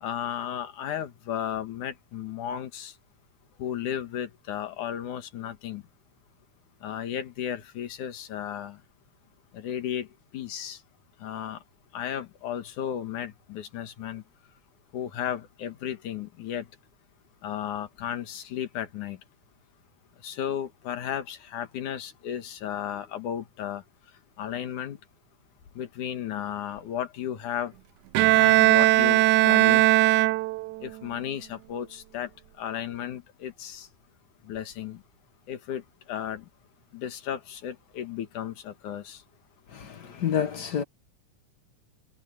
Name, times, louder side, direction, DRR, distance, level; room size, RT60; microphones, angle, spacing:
voice 1, 0.0-2.9 3.6-5.8 6.8-8.8 9.5-10.1 10.3-10.8 11.2-11.6 11.9-14.2 14.9-16.7 17.4-19.2 20.2-23.8 24.4-25.0 25.8-27.7 28.3-29.8 30.8-32.3 32.6-33.9 34.5-35.0 35.5-35.8 36.1-36.4 36.9-39.2, left 10 dB, 75° left, 3.1 m, -34 dB
Bowed string instrument, 28.1-30.9, right 17 dB, 80° right, 1.9 m, -19 dB
voice 2, 39.7-40.8, left 8 dB, 50° left, 1.2 m, -29 dB
omnidirectional pair, 3.6 m